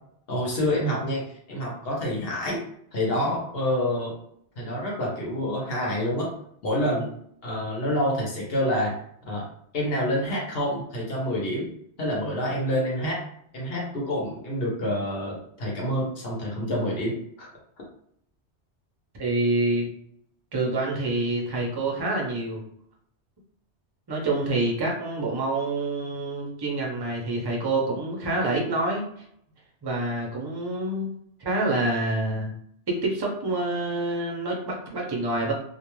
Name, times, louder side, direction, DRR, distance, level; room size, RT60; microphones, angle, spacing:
voice 1, 0.3-2.6 2.9-4.1 4.6-6.3 6.6-7.1 7.4-9.5 9.7-11.7 12.0-13.2 13.5-17.5, equal, 60° left, -3 dB, 1.0 m, -27 dB
voice 2, 19.2-19.9 20.5-22.6 24.1-29.0 29.8-31.1 31.4-32.5 32.9-35.5, right 2 dB, 30° right, -1 dB, 0.5 m, -27 dB
2.4 x 2.2 x 2.9 m, 0.68 s
omnidirectional pair, 1.2 m